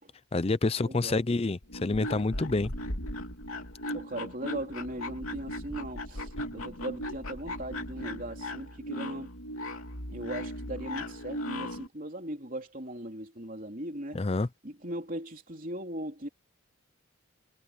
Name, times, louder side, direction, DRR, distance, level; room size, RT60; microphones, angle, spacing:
voice 1, 0.3-2.7 14.1-14.5, left 3 dB, 30° left, 0.5 m, -28 dB
voice 2, 0.8-1.2 3.9-9.3 10.1-14.2 14.6-16.3, right 1 dB, 40° right, 3.6 m, -39 dB
sound 1, 1.6-11.9, left 1 dB, 80° left, 3.2 m, -37 dB
head